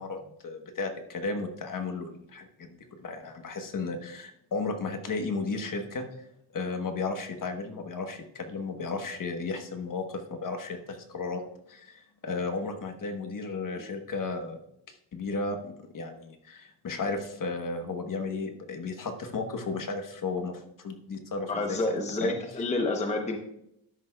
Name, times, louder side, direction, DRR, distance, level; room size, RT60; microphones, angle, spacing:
voice 1, 0.0-6.0 6.5-11.4 11.7-14.6 14.9-22.4, left 3 dB, 40° left, 5 dB, 1.1 m, -34 dB
voice 2, 21.4-23.4, left 2 dB, 15° left, 4 dB, 0.8 m, -29 dB
12.5 x 10.0 x 2.3 m, 0.79 s
wide cardioid pair, 145°, 49 cm